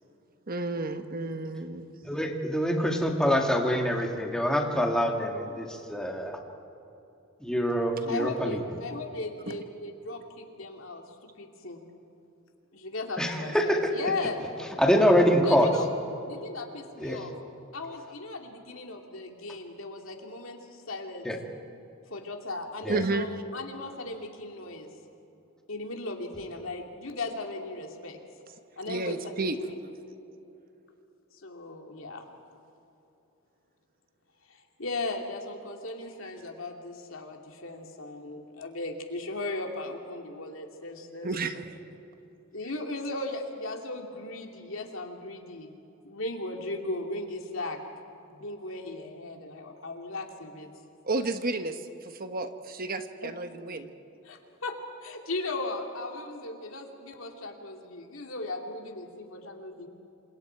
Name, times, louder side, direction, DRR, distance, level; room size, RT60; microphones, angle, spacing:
voice 1, 0.5-1.9 9.5-9.6 22.9-23.3 28.9-29.6 41.2-41.6 51.0-53.9, right 2 dB, 45° right, 8 dB, 1.2 m, -31 dB
voice 2, 2.1-6.4 7.4-8.6 13.2-13.9 14.8-15.7 17.0-17.2 21.3-21.4 22.9-23.0, equal, 5° left, 1 dB, 2.2 m, -25 dB
voice 3, 8.1-11.0 11.4-11.8 12.8-14.5 15.4-17.3 17.7-21.3 22.1-23.3 23.5-24.9 25.7-28.2 28.8-29.2 29.7-29.8 31.4-32.2 34.5-41.3 42.5-45.7 46.0-47.8 48.3-50.7 54.2-59.9, left 2 dB, 70° left, 2 dB, 2.7 m, -37 dB
28.0 x 27.0 x 4.7 m, 2.9 s
head